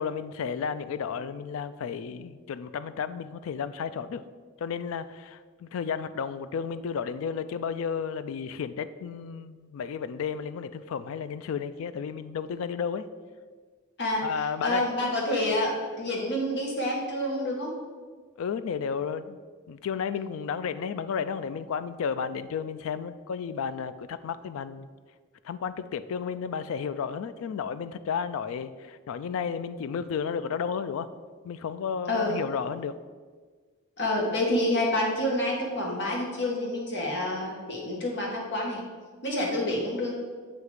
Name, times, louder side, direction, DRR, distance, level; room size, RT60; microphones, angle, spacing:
voice 1, 0.0-4.2 4.6-13.1 14.2-14.8 18.4-19.4 19.7-24.9 25.4-31.1 31.4-33.0, left 6 dB, 75° left, 13 dB, 0.3 m, -32 dB
voice 2, 14.6-17.7 32.1-32.4 34.0-38.8 39.2-40.1, left 1 dB, 50° left, -1 dB, 1.3 m, -28 dB
7.9 x 2.8 x 4.8 m, 1.5 s
head